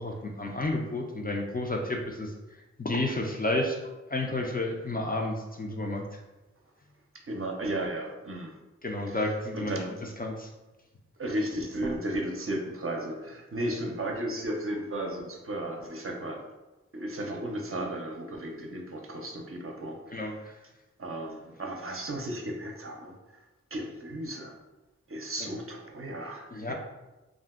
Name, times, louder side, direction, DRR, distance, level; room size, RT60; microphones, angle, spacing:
voice 1, 0.0-2.3 2.8-6.2 8.8-9.8 10.2-10.5 20.1-20.6 26.5-26.7, left 2 dB, 30° left, 1 dB, 0.4 m, -31 dB
voice 2, 7.3-8.5 9.1-9.2 9.5-9.9 11.2-16.4 16.9-20.5 21.0-23.2 23.7-24.5 25.1-26.7, right 1 dB, 50° right, 1 dB, 0.5 m, -34 dB
2.4 x 2.1 x 3.5 m, 1.1 s
wide cardioid pair, 50°, 29 cm